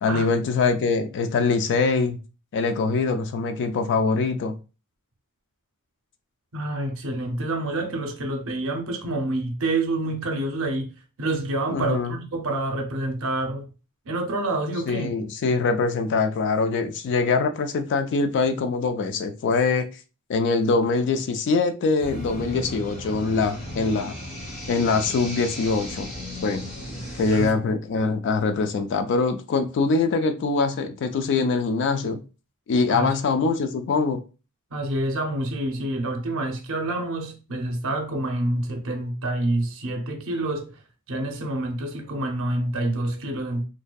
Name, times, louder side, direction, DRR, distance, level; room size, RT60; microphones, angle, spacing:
voice 1, 0.0-2.2 2.5-4.6 11.7-12.1 14.9-19.9 20.3-24.1 24.7-26.1 26.4-26.6 27.2-32.2 32.7-34.2, left 4 dB, 55° left, 0.3 m, -23 dB
voice 2, 6.5-10.9 11.2-13.7 14.1-15.1 27.3-27.6 32.9-33.1 34.7-40.7 41.1-43.6, right 2 dB, 65° right, 0.6 m, -27 dB
sound 1, 22.0-27.5, left 1 dB, 30° left, 1.0 m, -35 dB
2.6 x 2.1 x 2.2 m
head